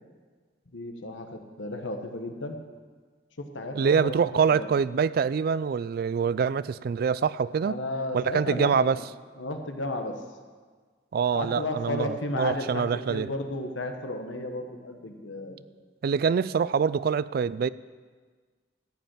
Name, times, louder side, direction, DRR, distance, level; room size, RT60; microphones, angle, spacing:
voice 1, 0.7-2.6 3.4-4.7 7.6-9.0 9.4-10.2 11.3-15.6, left 2 dB, 80° left, 5 dB, 1.3 m, -33 dB
voice 2, 3.7-7.8 8.1-9.0 11.1-13.3 16.0-17.7, right 6 dB, 55° right, 18 dB, 0.3 m, -25 dB
14.0 x 5.4 x 9.0 m, 1.5 s
head